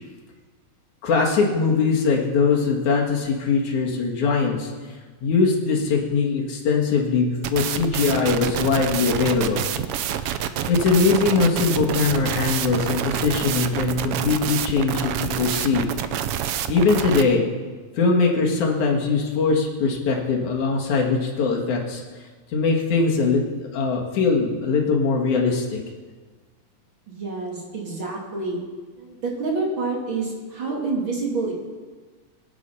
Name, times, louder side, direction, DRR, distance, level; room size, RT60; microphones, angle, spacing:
voice 1, 1.0-4.7 5.2-9.6 10.7-15.9 16.7-17.4 18.0-22.0 22.5-25.8, left 4 dB, 80° left, -1 dB, 3.4 m, -21 dB
sound 1, 7.4-17.2, right 10 dB, 80° right, 1.3 m, -27 dB
voice 2, 27.1-28.6 29.0-31.5, right 3 dB, 45° right, -2 dB, 2.9 m, -28 dB
23.0 x 8.4 x 5.7 m, 1.4 s
omnidirectional pair, 3.4 m